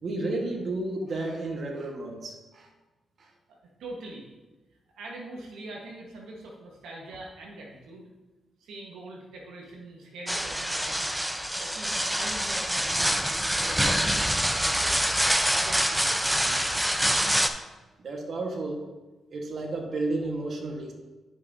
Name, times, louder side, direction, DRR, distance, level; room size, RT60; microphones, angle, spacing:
voice 1, 0.0-2.7 3.2-3.3 18.0-18.9 19.3-20.9, right 2 dB, 60° right, 1 dB, 1.3 m, -32 dB
voice 2, 3.5-4.2 4.9-8.1 8.6-11.2 11.6-15.0 15.5-16.5, right 2 dB, 90° right, -2 dB, 1.3 m, -43 dB
sound 1, 10.3-17.5, equal, 5° right, 0.7 m, -26 dB
11.5 x 5.6 x 2.7 m, 1.2 s
cardioid pair, 65°, 0 cm